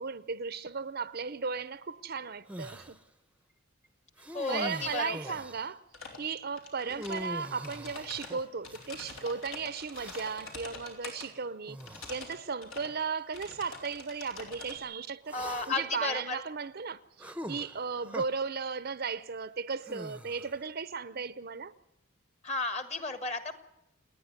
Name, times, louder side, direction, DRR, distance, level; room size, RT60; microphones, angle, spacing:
voice 1, 0.0-3.0 4.5-5.8 6.2-11.8 12.1-21.7, right 5 dB, 50° right, 0.7 m, -36 dB
sound 1, 2.5-3.0 4.2-5.7 6.8-9.2 9.9-10.6 11.7-12.2 13.0-13.1 15.3-16.0 17.2-18.3 19.8-20.7, right 1 dB, 5° right, 0.8 m, -43 dB
voice 2, 4.3-5.2 15.3-16.4 22.4-23.6, left 3 dB, 35° left, 1.6 m, -33 dB
sound 2, 5.9-6.2 6.6-7.3 7.6-11.3 11.8-12.3 12.6-12.9 13.3-14.8, left 4 dB, 80° left, 4.9 m, -45 dB
29.0 x 10.0 x 9.6 m
head